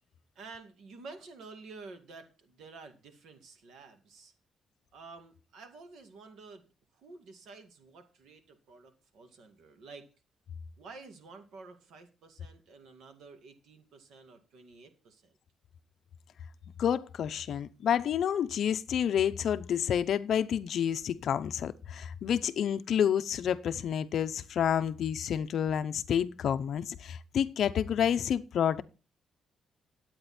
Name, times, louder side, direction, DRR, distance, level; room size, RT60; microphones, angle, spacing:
voice 1, 0.4-4.3 4.9-6.7 6.9-10.1 10.8-15.3, right 4 dB, 75° right, 2.1 m, -50 dB
voice 2, 16.8-28.8, left 9 dB, 60° left, 0.6 m, -29 dB
10.5 x 8.7 x 4.3 m
cardioid pair, 160°, 0 cm